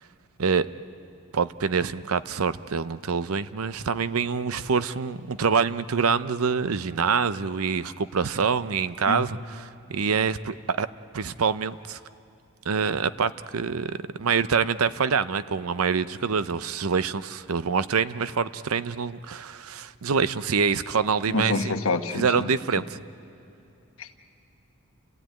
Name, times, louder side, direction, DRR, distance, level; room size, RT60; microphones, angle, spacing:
voice 1, 1.3-10.9 11.1-12.0 12.7-21.7 22.1-23.0, right 5 dB, 85° right, 14 dB, 0.6 m, -26 dB
voice 2, 21.3-22.2 24.0-24.2, left 3 dB, 70° left, 7 dB, 1.2 m, -27 dB
29.5 x 16.0 x 9.1 m, 2.7 s
head